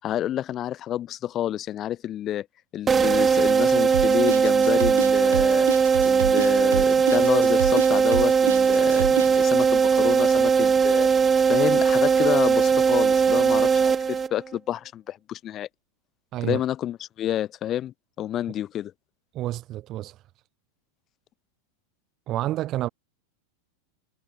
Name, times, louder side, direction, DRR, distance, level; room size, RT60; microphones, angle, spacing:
voice 1, 0.0-2.5 2.7-5.7 6.0-11.1 11.5-15.7 16.4-18.9, left 12 dB, 30° left, 3.9 m, -29 dB
sound 1, 2.9-14.6, right 6 dB, 20° right, 1.2 m, -19 dB
sound 2, 3.9-9.4, right 9 dB, 65° right, 1.8 m, -29 dB
voice 2, 19.3-20.1 22.3-22.9, right 14 dB, 35° right, 1.0 m, -29 dB
figure-of-eight pair, 90°, 0 cm